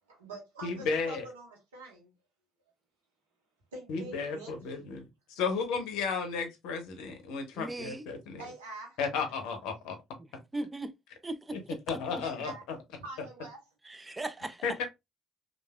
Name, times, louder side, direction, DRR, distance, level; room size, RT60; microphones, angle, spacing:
voice 1, 0.1-2.1 3.7-4.5 8.4-9.0 12.2-12.6 13.0-13.6, right 3 dB, 80° right, 1.0 m, -45 dB
voice 2, 0.6-1.2 3.9-5.1 5.4-8.4 9.0-10.0 11.5-11.6 11.9-12.8 14.6-14.9, left 5 dB, 65° left, 0.7 m, -33 dB
voice 3, 7.6-8.0 10.5-10.9 11.2-11.8 13.9-14.6, right 2 dB, 20° right, 0.5 m, -38 dB
3.2 x 2.4 x 2.2 m
figure-of-eight pair, 50°, 0 cm